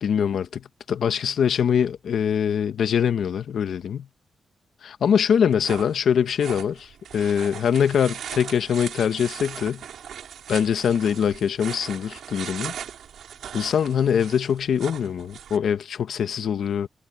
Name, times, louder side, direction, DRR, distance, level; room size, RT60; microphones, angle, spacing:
voice 1, 0.0-4.1 4.8-9.8 10.5-12.7 13.5-16.9, left 8 dB, 75° left, 1.2 m, -23 dB
sound 1, 5.3-15.6, right 9 dB, 85° right, 4.9 m, -39 dB
wide cardioid pair, 115°, 0 cm